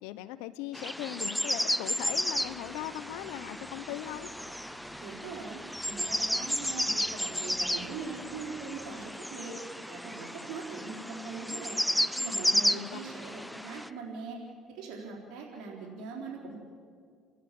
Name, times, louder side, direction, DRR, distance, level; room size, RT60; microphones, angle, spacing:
voice 1, 0.0-4.3 12.7-13.0, left 14 dB, 85° left, 13 dB, 0.7 m, -39 dB
sound 1, 0.7-13.9, equal, ahead, 0.6 m, -33 dB
sound 2, 2.3-9.2, right 2 dB, 35° right, 5.0 m, -55 dB
voice 2, 5.0-11.8 12.2-14.4 14.7-16.6, right 4 dB, 75° right, -1 dB, 4.1 m, -41 dB
30.0 x 11.0 x 8.5 m, 2.1 s
supercardioid pair, 90°, 0 cm